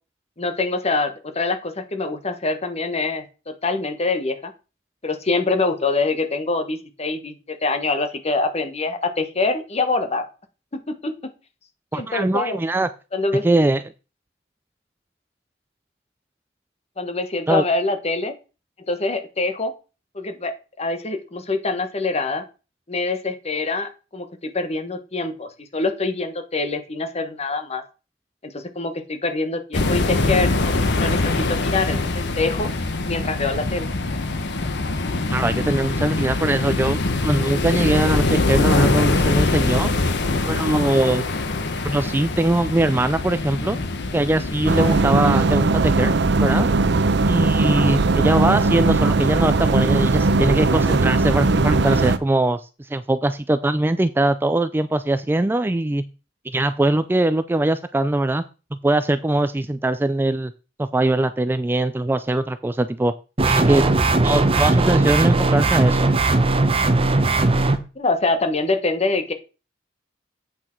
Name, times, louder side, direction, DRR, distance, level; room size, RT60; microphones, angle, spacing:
voice 1, 0.4-4.5 5.0-10.3 10.7-11.2 11.9-12.6 13.1-13.5 17.0-18.3 18.9-19.7 20.1-22.4 22.9-24.3 24.5-27.8 28.4-32.7 33.1-33.9 68.0-69.3, left 3 dB, 35° left, 8 dB, 1.1 m, -25 dB
voice 2, 11.9-12.9 13.4-13.8 17.5-17.6 35.3-39.9 40.5-41.2 41.8-43.8 44.1-46.1 46.4-46.7 47.3-56.0 56.5-58.4 58.8-60.5 60.8-63.1 63.5-63.8 64.2-66.1, right 2 dB, 10° right, 12 dB, 0.3 m, -21 dB
sound 1, 29.7-45.0, left 2 dB, 65° left, 1.0 m, -23 dB
sound 2, 44.7-52.2, right 3 dB, 65° right, 0.7 m, -19 dB
sound 3, 63.4-67.8, right 2 dB, 30° right, 0.8 m, -18 dB
8.3 x 6.1 x 4.4 m, 0.32 s
head